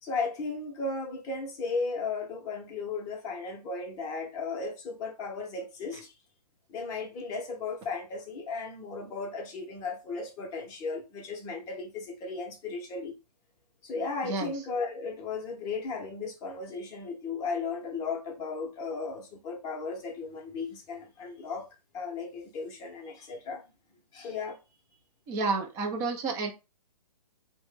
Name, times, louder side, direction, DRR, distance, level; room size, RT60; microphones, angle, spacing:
voice 1, 0.0-6.1 6.7-13.1 13.8-21.7 21.9-23.6 24.1-24.6, left 4 dB, 20° left, 0.7 m, -35 dB
voice 2, 25.3-26.5, right 3 dB, 15° right, 0.5 m, -30 dB
3.0 x 2.1 x 3.2 m
hypercardioid pair, 140°, 20 cm